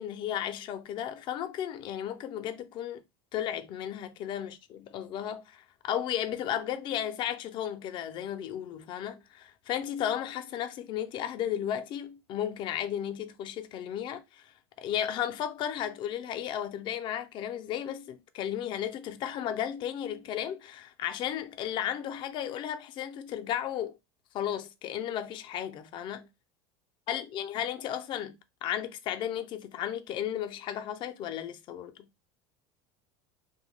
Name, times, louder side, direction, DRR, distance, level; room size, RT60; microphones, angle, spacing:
voice 1, 0.0-3.0 3.3-24.0 24.3-26.3 27.1-32.1, left 10 dB, 40° left, 0.4 m, -34 dB
2.7 x 2.2 x 3.0 m
supercardioid pair, 145°, 13 cm